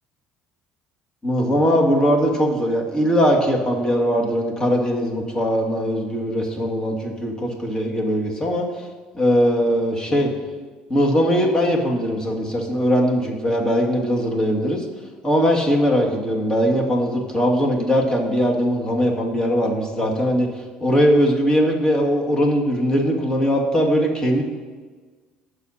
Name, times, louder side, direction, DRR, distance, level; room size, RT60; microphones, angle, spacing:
voice 1, 1.2-8.9 9.1-10.3 10.9-14.8 15.2-20.5 20.8-24.4, equal, 25° left, -1 dB, 2.2 m, -20 dB
15.5 x 6.6 x 2.9 m, 1.4 s
supercardioid pair, 80°, 3 cm